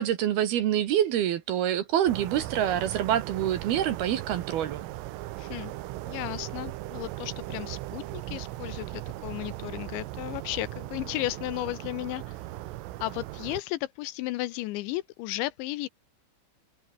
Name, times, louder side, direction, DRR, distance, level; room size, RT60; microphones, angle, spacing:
voice 1, 0.0-4.9, right 11 dB, 65° right, 2.9 m, -26 dB
sound 1, 2.1-13.6, right 17 dB, 85° right, 3.7 m, -38 dB
voice 2, 5.4-5.7 6.1-12.3 13.0-15.9, left 17 dB, 80° left, 2.9 m, -34 dB
omnidirectional pair, 5.6 m